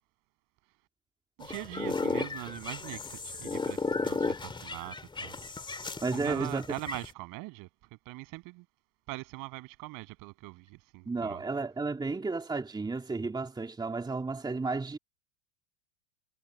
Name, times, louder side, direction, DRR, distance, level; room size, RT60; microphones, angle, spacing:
sound 1, 1.4-7.1, left 4 dB, 10° left, 3.0 m, -34 dB
voice 1, 1.4-5.0 5.2-5.3 6.1-7.7 8.1-8.6 9.1-11.4, right 25 dB, 55° right, 7.3 m, -41 dB
voice 2, 6.0-6.6 11.1-15.0, right 3 dB, 10° right, 3.0 m, -32 dB
supercardioid pair, 120°, 40 cm